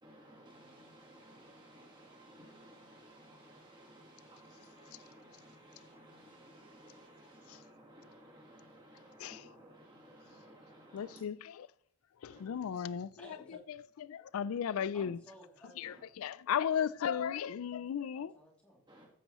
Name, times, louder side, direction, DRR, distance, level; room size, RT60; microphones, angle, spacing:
voice 1, 0.0-11.2 12.3-12.6 15.8-16.0 18.9-19.1, right 1 dB, 20° right, 1.4 m, -57 dB
voice 2, 9.2-9.5 10.9-11.7 12.2-15.2 15.8-18.3, left 8 dB, 85° left, 0.4 m, -36 dB
voice 3, 13.1-13.6 14.9-15.7 17.1-17.2 18.1-18.8, equal, 5° left, 2.7 m, -55 dB
13.5 x 9.3 x 3.0 m
head